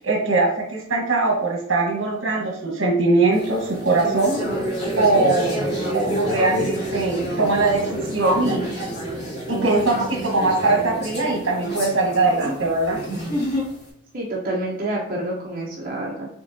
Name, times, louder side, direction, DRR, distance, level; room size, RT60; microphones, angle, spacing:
voice 1, 0.0-4.4 5.0-5.5 5.9-8.7 9.5-13.0, right 2 dB, 75° right, -1 dB, 1.2 m, -21 dB
sound 1, 3.3-13.8, equal, 55° left, 1.6 m, -28 dB
voice 2, 14.1-16.3, right 1 dB, 45° right, -5 dB, 0.8 m, -28 dB
6.2 x 2.9 x 2.7 m, 0.72 s
head